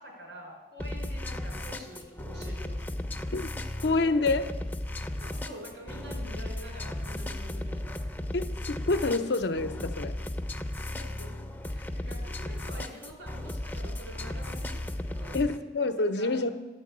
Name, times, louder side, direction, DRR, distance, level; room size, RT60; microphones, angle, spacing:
voice 1, 0.0-2.9 5.2-8.4 10.9-15.4 16.1-16.5, equal, 85° right, 4.6 m, -46 dB
sound 1, 0.8-15.6, left 1 dB, 10° left, 0.5 m, -35 dB
voice 2, 3.8-4.5 8.3-10.2 15.3-16.5, left 3 dB, 70° left, 0.7 m, -27 dB
10.5 x 6.7 x 8.4 m
head